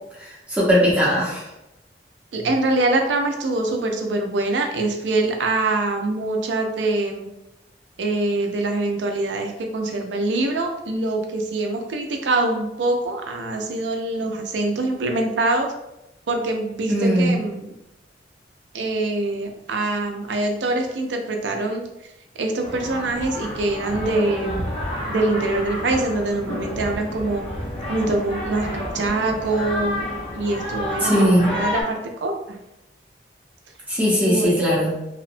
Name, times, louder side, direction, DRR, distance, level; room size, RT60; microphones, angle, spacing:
voice 1, 0.5-1.4 16.9-17.4 31.0-31.5 33.9-35.0, equal, 10° right, -7 dB, 0.7 m, -19 dB
voice 2, 2.3-7.3 8.0-15.7 16.3-17.7 18.7-21.8 22.4-24.6 25.1-27.5 27.9-30.1 30.3-32.6 34.2-34.6, right 2 dB, 85° right, 3 dB, 0.4 m, -24 dB
sound 1, 22.6-31.8, left 1 dB, 30° left, 0.5 m, -30 dB
2.8 x 2.1 x 2.5 m, 0.93 s
head